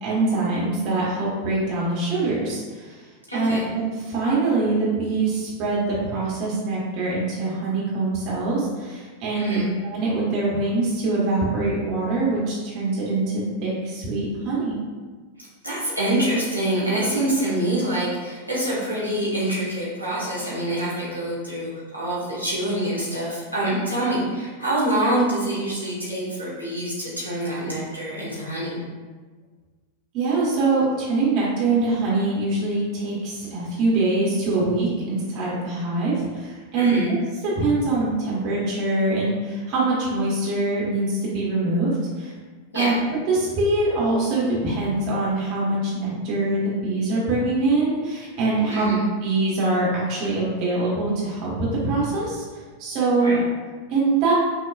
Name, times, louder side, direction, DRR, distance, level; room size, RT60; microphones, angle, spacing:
voice 1, 0.0-3.0 3.3-14.7 30.1-36.9 37.4-42.3 42.7-43.0 43.3-48.9 49.2-52.4 52.8-53.4 53.9-54.3, right 2 dB, 40° right, -6 dB, 1.5 m, -23 dB
voice 2, 3.3-3.7 9.3-9.7 15.6-28.8 36.7-37.1 42.7-43.0 48.7-49.0 53.2-53.4, right 1 dB, 90° right, -9 dB, 1.3 m, -25 dB
5.8 x 2.9 x 2.5 m, 1.4 s
figure-of-eight pair, 90°, 0 cm